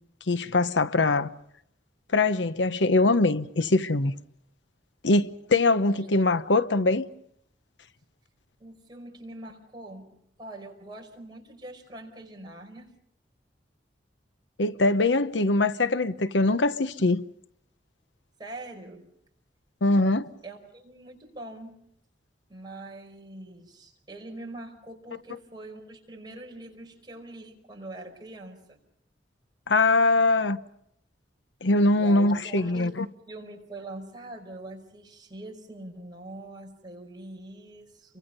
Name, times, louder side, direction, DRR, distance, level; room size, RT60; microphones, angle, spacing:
voice 1, 0.3-1.3 2.1-4.1 5.0-7.0 14.6-17.2 19.8-20.3 29.7-30.6 31.6-33.1, left 2 dB, 85° left, 1.0 m, -22 dB
voice 2, 5.9-6.5 8.6-10.1 10.4-12.9 18.4-19.1 20.4-21.8 22.5-28.8 31.9-33.0 33.3-38.2, right 1 dB, 25° right, 5.2 m, -43 dB
29.5 x 24.5 x 5.5 m
head